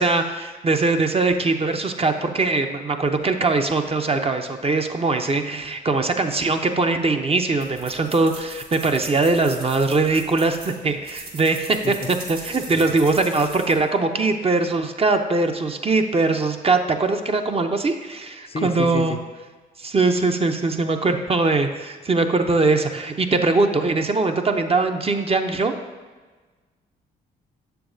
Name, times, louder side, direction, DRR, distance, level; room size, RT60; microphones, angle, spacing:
voice 1, 0.0-19.1 19.8-25.7, right 3 dB, 30° right, 5 dB, 0.6 m, -21 dB
sound 1, 7.6-13.7, right 3 dB, 50° right, 1.4 m, -40 dB
voice 2, 18.5-19.2, left 3 dB, 30° left, 7 dB, 0.5 m, -30 dB
6.9 x 6.8 x 2.6 m, 1.3 s
supercardioid pair, 60°, 20 cm